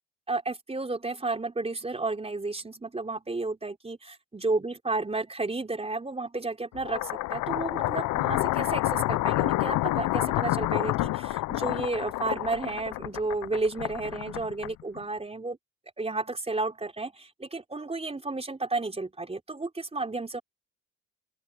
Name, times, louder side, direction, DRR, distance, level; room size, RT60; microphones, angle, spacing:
voice 1, 0.3-15.6 16.0-20.4, right 3 dB, 20° right, 4.1 m, -32 dB
sound 1, 6.8-15.0, left 18 dB, 90° left, 0.6 m, -28 dB
open air
cardioid pair, 90°, 30 cm